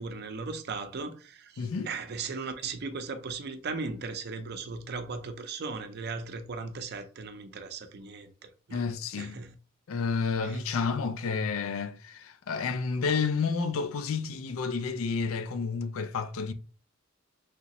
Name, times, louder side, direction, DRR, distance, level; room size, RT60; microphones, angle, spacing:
voice 1, 0.0-9.5 10.4-10.6, right 4 dB, 55° right, 0.5 m, -37 dB
voice 2, 1.6-1.9 8.7-9.4 9.9-16.5, left 5 dB, 85° left, 0.4 m, -30 dB
3.4 x 2.9 x 2.9 m
head